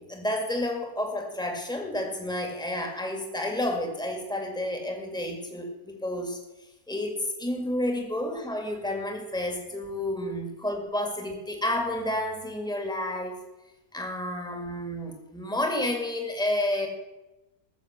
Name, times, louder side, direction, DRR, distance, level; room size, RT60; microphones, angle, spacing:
voice 1, 0.0-6.4 6.9-13.4 13.9-16.9, left 1 dB, 5° left, 3 dB, 2.1 m, -30 dB
14.5 x 7.1 x 8.1 m, 1.0 s
omnidirectional pair, 1.6 m